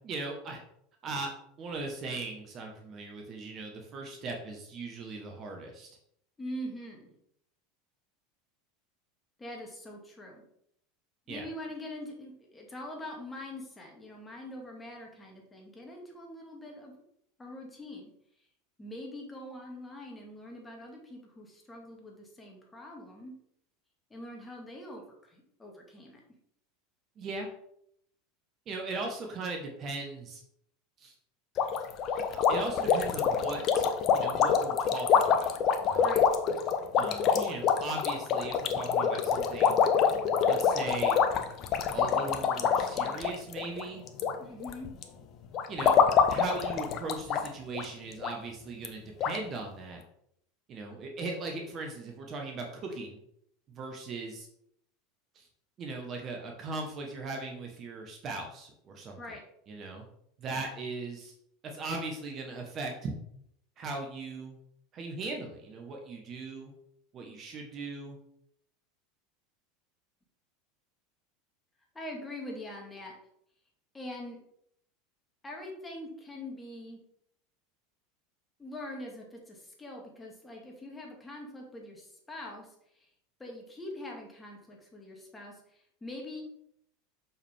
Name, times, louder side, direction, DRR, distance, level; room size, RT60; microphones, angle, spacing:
voice 1, 0.0-0.6 1.0-1.3 1.6-5.9 11.3-11.5 27.2-27.5 28.7-30.4 31.0-31.1 32.3-33.9 34.1-35.6 35.8-36.1 37.0-39.8 40.5-41.2 41.9-44.0 45.7-46.0 46.3-50.0 50.7-53.2 53.7-54.5 55.3-55.5 55.8-59.4 59.7-60.0 60.4-61.3 61.6-63.1 63.8-64.6 64.9-66.7 67.1-68.2, right 3 dB, 40° right, 2 dB, 1.4 m, -38 dB
voice 2, 6.4-7.1 9.4-10.4 11.3-17.0 17.4-18.1 18.8-23.3 24.1-26.2 36.0-36.3 44.4-44.9 59.2-59.4 71.9-73.1 73.9-74.4 75.4-77.0 78.6-82.7 83.0-83.1 83.4-86.4, left 1 dB, 15° left, 0 dB, 2.3 m, -43 dB
sound 1, 31.6-44.3 44.6-45.0 45.5-47.5 47.7-47.8 48.2-48.3 48.8-48.9 49.2-49.4, left 7 dB, 45° left, 0.8 m, -26 dB
6.5 x 5.8 x 3.7 m, 0.71 s
hypercardioid pair, 80°, 0 cm